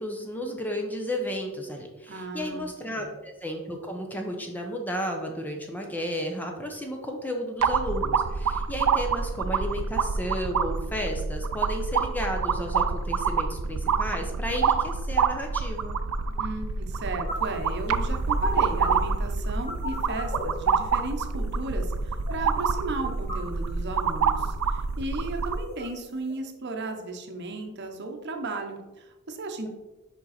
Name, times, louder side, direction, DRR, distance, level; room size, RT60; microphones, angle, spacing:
voice 1, 0.0-16.0, equal, 10° left, 2 dB, 0.6 m, -33 dB
voice 2, 2.1-2.7 3.0-3.1 16.4-29.7, right 2 dB, 50° right, 4 dB, 0.8 m, -35 dB
sound 1, 7.6-25.6, right 5 dB, 85° right, 0.4 m, -27 dB
sound 2, 17.3-26.4, equal, 30° left, 2.1 m, -39 dB
5.2 x 5.2 x 4.1 m, 1.1 s
head